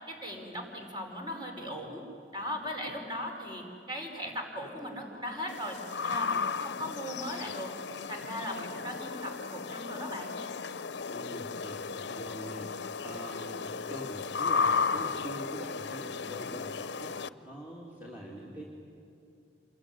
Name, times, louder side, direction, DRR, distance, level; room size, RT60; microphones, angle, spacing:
voice 1, 0.1-2.0 2.3-5.8 6.0-7.7 8.1-10.4, equal, 25° right, 2 dB, 5.1 m, -38 dB
sound 1, 5.5-17.3, left 5 dB, 80° left, 0.7 m, -34 dB
voice 2, 11.1-12.7 13.0-17.1 17.4-18.6, right 1 dB, 10° right, -3 dB, 3.0 m, -43 dB
27.5 x 22.0 x 9.9 m, 2.6 s
head